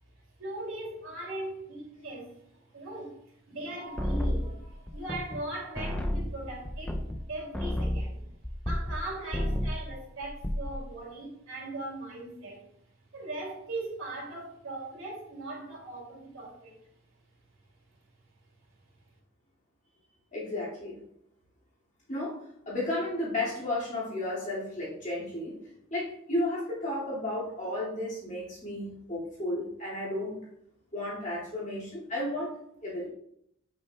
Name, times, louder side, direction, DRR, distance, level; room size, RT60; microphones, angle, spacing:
voice 1, 0.4-2.3 2.7-3.2 3.5-8.2 8.7-12.7 13.1-16.8, right 2 dB, 75° right, -2 dB, 2.6 m, -39 dB
sound 1, 4.0-5.5 5.8-9.0 9.3-9.9 10.2-10.8, equal, 5° left, 0.4 m, -31 dB
voice 2, 20.3-21.0 22.1-22.4 22.7-25.6 25.9-30.4 30.9-32.5 32.8-33.1, left 1 dB, 35° left, -6 dB, 2.3 m, -33 dB
7.5 x 6.4 x 2.3 m, 0.74 s
head